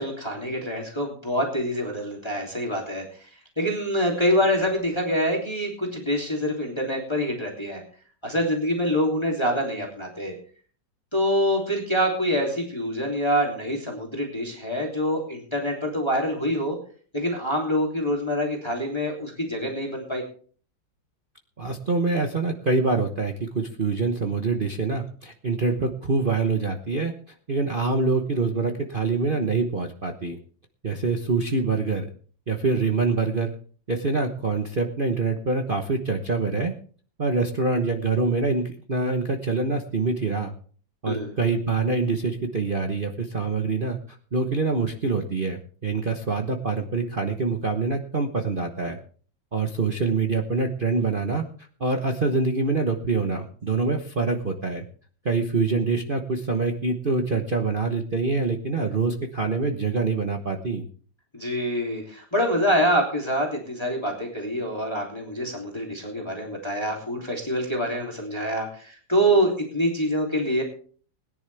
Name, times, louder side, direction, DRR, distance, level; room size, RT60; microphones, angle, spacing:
voice 1, 0.0-3.3 3.6-7.8 8.2-10.3 11.1-16.8 17.1-20.2 41.1-41.3 61.3-70.6, equal, 15° left, -1 dB, 3.1 m, -25 dB
voice 2, 21.6-27.1 27.5-30.4 30.8-32.1 32.5-33.5 33.9-36.7 37.2-40.5 41.0-49.0 49.5-51.5 51.8-54.8 55.2-60.8, right 4 dB, 35° right, 3 dB, 1.1 m, -25 dB
21.0 x 10.5 x 3.4 m, 0.43 s
omnidirectional pair, 2.0 m